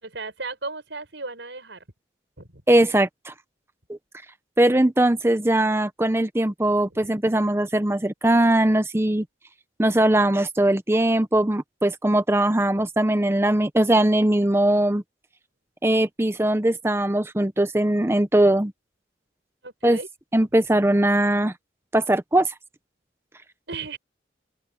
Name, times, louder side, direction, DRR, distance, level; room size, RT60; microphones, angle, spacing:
voice 1, 0.0-1.8 2.4-2.6 6.9-7.1 19.6-20.1 23.7-24.0, right 3 dB, 90° right, 6.0 m, -35 dB
voice 2, 2.7-3.3 3.9-4.0 4.6-9.2 9.8-15.0 15.8-18.7 19.8-20.0 20.3-21.5 21.9-22.5, right 1 dB, 15° right, 0.7 m, -20 dB
open air
head